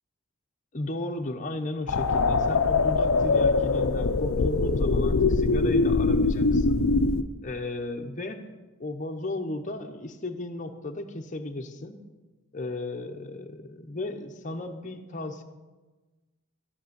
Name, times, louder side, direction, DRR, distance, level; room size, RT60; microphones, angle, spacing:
voice 1, 0.7-6.9 7.4-8.5 8.8-12.0 12.5-15.4, left 2 dB, 35° left, 4 dB, 0.9 m, -35 dB
sound 1, 1.9-7.2, left 3 dB, 70° left, 0.6 m, -23 dB
14.0 x 6.2 x 8.0 m, 1.2 s
head